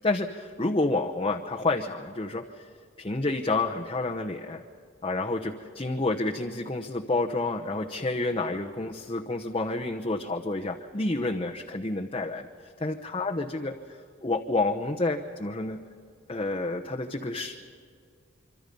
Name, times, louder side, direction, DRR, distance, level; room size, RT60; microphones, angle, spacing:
voice 1, 0.0-2.6 3.0-4.6 5.0-12.5 12.8-13.7 14.2-15.8 16.3-17.6, left 2 dB, 25° left, 1 dB, 1.0 m, -29 dB
26.5 x 25.0 x 5.4 m, 2.2 s
head